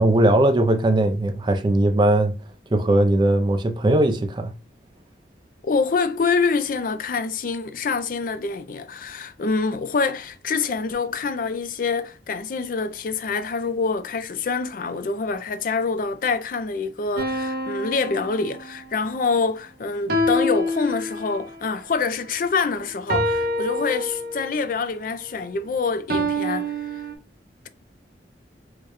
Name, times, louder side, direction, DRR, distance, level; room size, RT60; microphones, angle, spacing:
voice 1, 0.0-2.4 2.7-4.5, right 1 dB, 25° right, 0.4 m, -19 dB
voice 2, 5.6-27.1, left 4 dB, 50° left, 0.4 m, -26 dB
sound 1, 17.2-19.0 20.1-21.6 23.1-24.6 26.1-27.2, equal, 55° right, 0.7 m, -26 dB
4.7 x 2.2 x 2.9 m
head